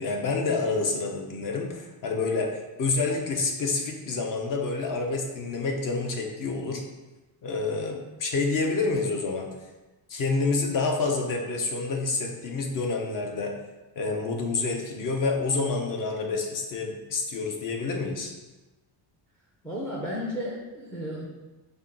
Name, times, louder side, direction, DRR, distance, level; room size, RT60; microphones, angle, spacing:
voice 1, 0.0-6.8 7.4-9.5 10.1-13.6 14.0-18.3, left 3 dB, 45° left, 2 dB, 0.7 m, -28 dB
voice 2, 19.6-21.3, equal, 5° left, -3 dB, 0.3 m, -33 dB
5.4 x 2.3 x 3.7 m, 1.1 s
cardioid pair, 160°, 47 cm